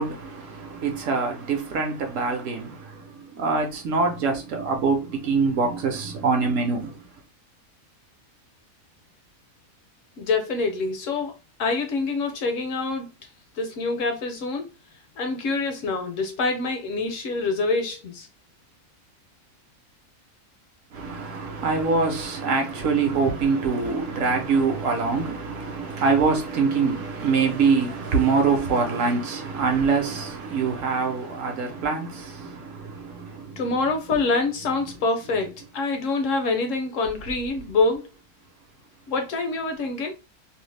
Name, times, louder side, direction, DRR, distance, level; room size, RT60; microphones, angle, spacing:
voice 1, 0.0-7.0 20.9-33.8 34.1-34.2, right 4 dB, 65° right, 1.0 m, -24 dB
voice 2, 10.2-13.1 13.6-14.7 15.2-18.3 33.6-38.1 39.1-40.1, left 3 dB, 70° left, 0.8 m, -26 dB
2.7 x 2.0 x 3.1 m
omnidirectional pair, 1.5 m